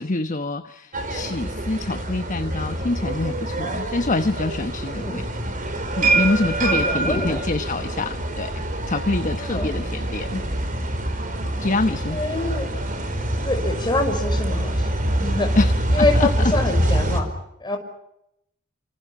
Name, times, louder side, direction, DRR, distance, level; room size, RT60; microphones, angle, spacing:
voice 1, 0.0-5.5 6.0-8.5 8.9-10.4 11.6-12.2 15.5-16.5, left 2 dB, 35° left, 10 dB, 1.1 m, -25 dB
sound 1, 0.9-17.2, right 1 dB, 40° right, 4.7 m, -25 dB
voice 2, 6.6-7.4 9.4-9.7 12.1-12.7 13.2-14.9 15.2-15.5 15.9-17.3 17.6-17.8, left 2 dB, 20° left, 3 dB, 6.1 m, -26 dB
29.0 x 27.0 x 6.2 m, 0.80 s
head